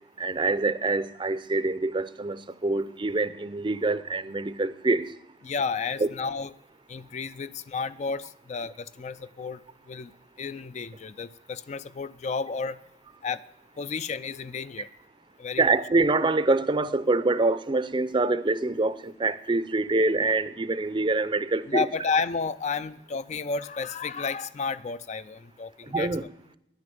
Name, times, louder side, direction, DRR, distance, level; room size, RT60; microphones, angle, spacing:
voice 1, 0.2-5.1 6.0-6.1 15.6-21.9 25.9-26.2, right 3 dB, 25° right, 0.5 m, -25 dB
voice 2, 5.4-6.5 6.9-10.1 10.4-12.8 13.2-13.4 13.8-14.9 15.4-15.7 21.7-26.3, left 5 dB, 40° left, 0.4 m, -32 dB
10.0 x 9.6 x 7.7 m
head